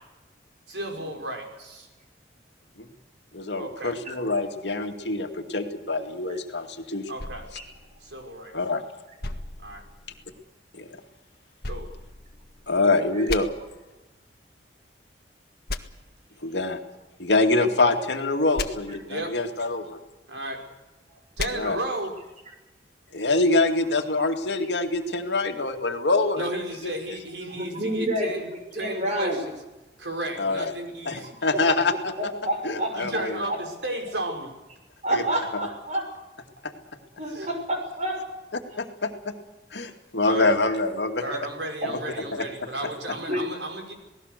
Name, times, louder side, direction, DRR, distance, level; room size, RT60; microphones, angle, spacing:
voice 1, 0.7-1.9 3.6-4.0 7.1-7.5 8.0-8.5 9.6-9.8 11.7-11.9 19.1-19.5 20.3-20.6 21.4-22.2 26.4-29.5 30.0-31.5 33.0-34.5 37.3-37.5 40.2-40.5 41.2-43.9, right 1 dB, 80° right, 3 dB, 5.5 m, -34 dB
voice 2, 3.3-7.1 8.5-8.8 10.7-10.9 12.7-13.5 16.4-16.8 17.2-20.0 21.5-21.8 23.1-26.4 30.4-30.6 31.1-32.1 32.6-33.5 35.1-35.2 36.6-36.7 38.8-39.3 39.7-41.2 42.3-42.5, left 2 dB, 75° left, 5 dB, 2.3 m, -25 dB
sound 1, 7.2-8.6 9.2-10.4 11.6-12.8 13.3-13.4 15.7-15.8 18.6-18.7 21.4-21.5, left 3 dB, 60° left, 1.6 m, -35 dB
voice 3, 27.5-28.3 28.7-29.4 31.5-31.6 32.2-33.0 33.5-33.6 35.0-36.1 37.2-38.2 41.2-41.3 41.8-41.9 43.3-43.5, right 1 dB, 40° right, 3 dB, 6.5 m, -28 dB
27.5 x 18.5 x 6.7 m, 1.1 s
head